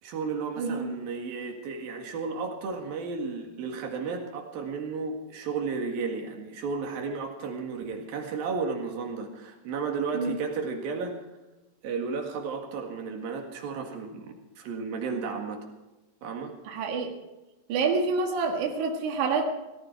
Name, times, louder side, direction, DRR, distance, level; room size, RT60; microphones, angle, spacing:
voice 1, 0.0-11.2 11.8-15.7 16.2-16.5, right 5 dB, 90° right, 3 dB, 3.8 m, -33 dB
voice 2, 0.6-0.9 10.1-10.4 16.6-17.1 17.7-19.5, right 4 dB, 60° right, 2 dB, 3.2 m, -27 dB
18.0 x 15.0 x 4.6 m, 1.1 s
omnidirectional pair, 4.0 m